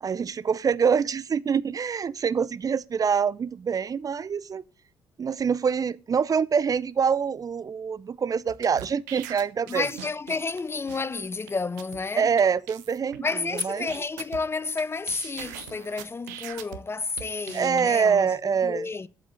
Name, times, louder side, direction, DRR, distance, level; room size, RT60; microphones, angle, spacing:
voice 1, 0.0-4.6 5.2-9.9 12.2-13.3 13.5-13.9 17.5-18.9, right 6 dB, 40° right, 0.6 m, -25 dB
sound 1, 8.5-10.6 10.9-11.0 11.5-11.6 11.8-12.0 12.4-12.5 12.7-13.2 13.6-14.8 15.1-16.8 17.2-17.8, right 12 dB, 75° right, 0.8 m, -41 dB
voice 2, 9.7-12.3 13.2-18.3 18.6-19.1, left 4 dB, 25° left, 0.6 m, -31 dB
8.4 x 7.3 x 8.1 m
figure-of-eight pair, 40°, 10 cm